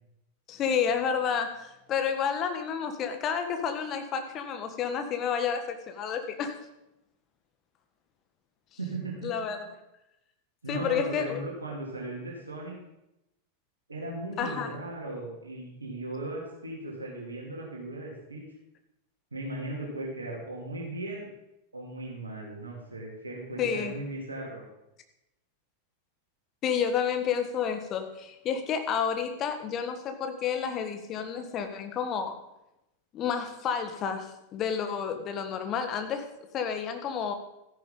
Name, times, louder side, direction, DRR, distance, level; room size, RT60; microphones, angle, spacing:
voice 1, 0.5-6.6 9.2-9.7 10.7-11.4 14.4-14.7 23.6-23.9 26.6-32.4 33.1-37.3, left 7 dB, 30° left, 7 dB, 1.5 m, -30 dB
voice 2, 8.8-9.3 10.6-12.8 13.9-18.4 19.3-21.3 21.7-24.6, right 2 dB, 75° right, -3 dB, 2.9 m, -37 dB
13.5 x 10.5 x 3.9 m, 0.88 s
figure-of-eight pair, 90°, 0 cm